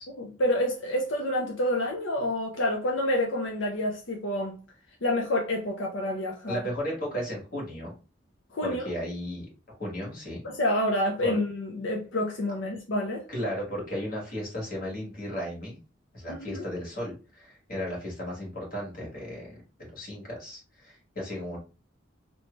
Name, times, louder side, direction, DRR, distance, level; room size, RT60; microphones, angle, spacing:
voice 1, 0.2-4.6 5.0-6.6 8.5-8.9 10.4-13.2 16.3-16.6, left 1 dB, 90° left, 0.7 m, -28 dB
voice 2, 6.5-8.0 8.6-10.4 11.2-11.4 13.3-15.8 16.1-21.6, equal, 50° left, 1.8 m, -35 dB
3.1 x 2.7 x 3.2 m
head